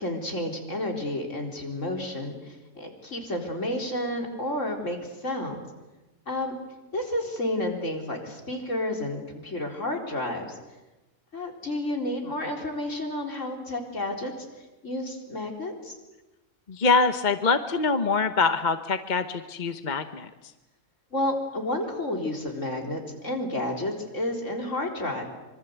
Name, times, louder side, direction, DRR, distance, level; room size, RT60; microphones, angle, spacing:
voice 1, 0.0-5.6 6.3-6.5 6.9-10.6 11.3-15.9 21.1-25.2, left 1 dB, 65° left, 2 dB, 4.5 m, -31 dB
voice 2, 16.7-20.3, left 4 dB, 35° left, 9 dB, 1.1 m, -24 dB
25.5 x 24.5 x 8.1 m, 1.1 s
omnidirectional pair, 1.4 m